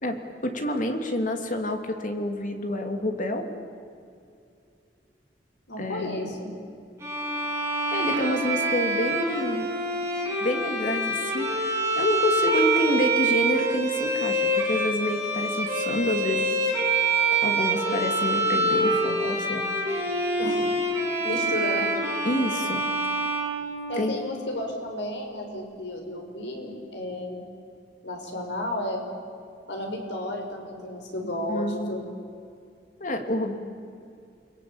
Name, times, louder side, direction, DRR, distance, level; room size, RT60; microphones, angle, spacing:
voice 1, 0.0-3.5 5.8-6.3 7.9-9.7 10.4-16.7 17.4-19.7 22.2-22.8 24.0-24.1 31.5-32.0 33.0-33.5, left 1 dB, 45° left, 5 dB, 2.8 m, -28 dB
voice 2, 5.7-6.5 20.4-20.7 21.2-21.9 23.9-27.4 28.0-29.0 29.7-32.0, left 1 dB, 85° left, 2 dB, 5.6 m, -32 dB
Bowed string instrument, 7.0-24.2, right 2 dB, 15° right, 6.4 m, -26 dB
29.5 x 22.0 x 8.8 m, 2.5 s
head